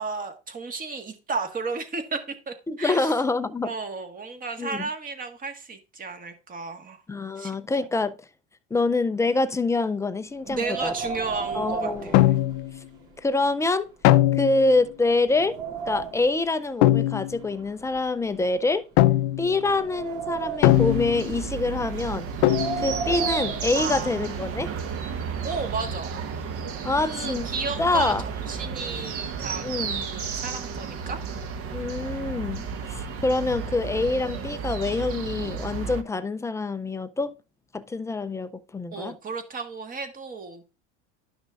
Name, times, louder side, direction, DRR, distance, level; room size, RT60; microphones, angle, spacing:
voice 1, 0.0-3.2 3.6-7.0 7.4-7.5 10.5-12.3 23.7-24.7 25.4-26.1 27.0-31.2 38.9-40.6, right 4 dB, 25° right, 1.6 m, -33 dB
voice 2, 2.7-3.7 4.6-4.9 7.1-8.2 8.7-10.9 11.5-12.2 13.2-13.9 14.3-15.6 15.9-18.9 19.4-22.3 22.8-24.7 26.8-27.5 27.8-28.2 29.6-30.0 31.7-37.3 37.7-39.2, left 3 dB, 10° left, 0.4 m, -26 dB
Wind, 10.4-13.0 13.4-13.5 14.2-14.3 14.8-16.4 17.2-18.8 19.3-20.9 22.2-24.3, right 5 dB, 65° right, 3.3 m, -34 dB
sound 1, 12.1-12.8 14.0-14.8 16.8-17.4 19.0-19.6 20.6-21.4 22.4-23.0, left 15 dB, 60° left, 0.6 m, -20 dB
sound 2, 20.6-36.0, right 6 dB, 45° right, 1.3 m, -33 dB
11.5 x 6.0 x 2.5 m
supercardioid pair, 125°, 33 cm